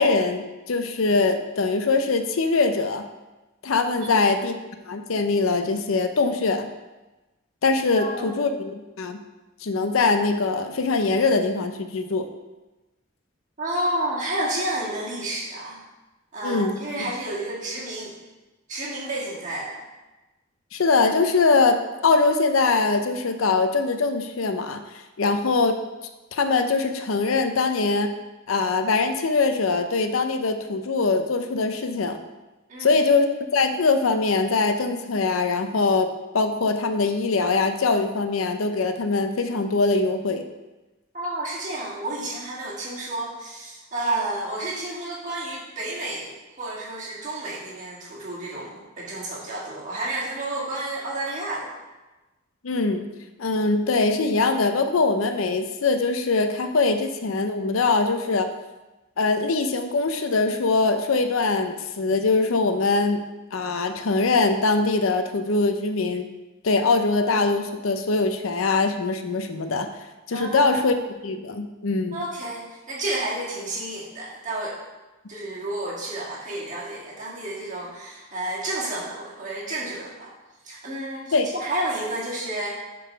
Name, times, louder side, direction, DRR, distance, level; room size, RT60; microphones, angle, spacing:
voice 1, 0.0-3.1 3.6-4.5 4.9-6.7 7.6-9.2 9.6-12.3 16.4-16.7 20.7-21.8 22.0-24.8 25.2-25.8 26.3-28.1 28.5-32.2 32.8-36.1 36.3-40.4 52.6-53.1 53.4-58.5 59.2-63.2 63.5-66.3 66.6-69.9 70.3-70.9 71.2-72.2 81.3-81.5, left 3 dB, 85° left, 8 dB, 0.6 m, -22 dB
voice 2, 7.9-8.3 13.6-15.8 16.3-18.1 18.7-19.8 32.7-33.0 41.1-51.7 70.3-70.8 72.1-74.8 75.3-80.3 80.6-81.3 81.6-82.7, right 1 dB, 40° right, -5 dB, 1.9 m, -31 dB
7.3 x 3.9 x 5.7 m, 1.1 s
head